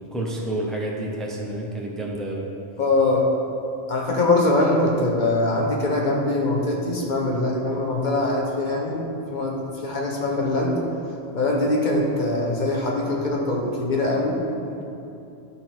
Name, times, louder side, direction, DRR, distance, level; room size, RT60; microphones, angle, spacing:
voice 1, 0.1-2.5, right 1 dB, ahead, -2 dB, 0.7 m, -29 dB
voice 2, 2.8-3.2 3.9-9.0 9.3-10.8 11.3-14.4, left 2 dB, 40° left, -2 dB, 1.2 m, -22 dB
12.0 x 4.1 x 4.4 m, 2.8 s
omnidirectional pair, 1.2 m